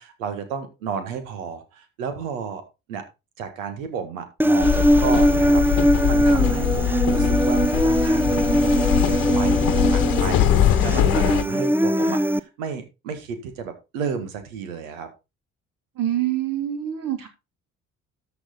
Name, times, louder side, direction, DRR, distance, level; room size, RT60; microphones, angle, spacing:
voice 1, 0.0-2.6 2.9-3.0 3.4-15.1, right 6 dB, 75° right, 1.8 m, -32 dB
Human voice, 4.4-12.4, right 1 dB, 5° right, 0.6 m, -20 dB
sound 1, 4.6-11.4, left 11 dB, 55° left, 1.2 m, -22 dB
voice 2, 16.0-17.3, right 12 dB, 55° right, 3.1 m, -25 dB
13.0 x 6.1 x 3.8 m
figure-of-eight pair, 45°, 40 cm